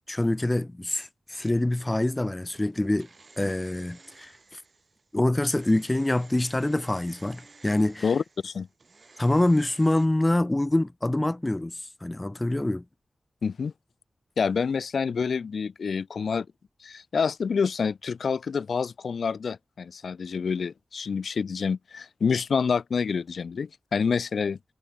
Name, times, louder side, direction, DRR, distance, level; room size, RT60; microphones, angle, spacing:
voice 1, 0.1-3.1 3.4-4.6 5.1-8.1 9.2-12.8, left 1 dB, 15° left, 0.4 m, -25 dB
magic bullet or blender, 2.4-10.1, right 3 dB, 45° right, 6.1 m, -54 dB
voice 2, 8.0-8.7 13.4-13.7 14.4-16.5 16.8-24.7, left 5 dB, 90° left, 1.0 m, -27 dB
wide cardioid pair, 135°, 0 cm